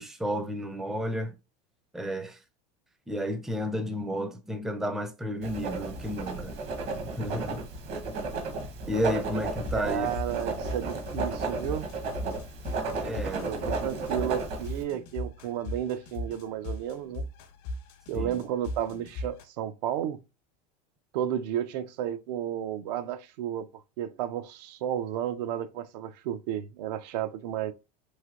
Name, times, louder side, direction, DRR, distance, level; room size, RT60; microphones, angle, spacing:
voice 1, 0.0-1.4 1.9-2.4 3.1-6.4 7.0-7.7 8.8-10.1 13.0-13.5 18.1-18.4, equal, ahead, 0.4 m, -32 dB
Writing, 5.4-14.8, right 3 dB, 55° right, 0.9 m, -34 dB
sound 1, 9.4-19.4, left 1 dB, 75° left, 0.9 m, -37 dB
voice 2, 9.7-11.9 13.4-17.3 18.1-20.2 21.1-27.7, right 10 dB, 80° right, 0.5 m, -32 dB
3.2 x 2.8 x 2.4 m
supercardioid pair, 115°, 21 cm